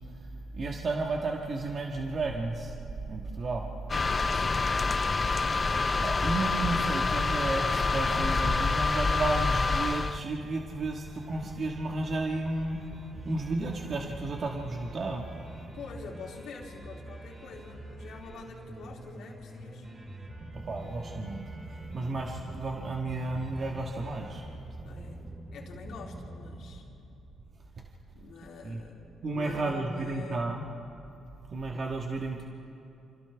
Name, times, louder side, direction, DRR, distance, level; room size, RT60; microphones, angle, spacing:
voice 1, 0.5-2.7 3.1-3.6 6.0-12.8 13.2-15.3 20.5-21.4 21.9-24.4 28.6-28.8 29.2-30.6 31.5-32.4, right 2 dB, 45° right, 0 dB, 1.5 m, -32 dB
sound 1, 3.9-10.2, left 4 dB, 30° left, 0.4 m, -27 dB
voice 2, 4.3-4.8 15.6-19.9 24.8-26.8 28.1-30.5, left 4 dB, 75° left, -1 dB, 3.0 m, -45 dB
sound 2, 9.9-26.8, right 1 dB, 30° right, 4.2 m, -45 dB
28.0 x 27.0 x 3.5 m, 2.8 s
cardioid pair, 90°, 0 cm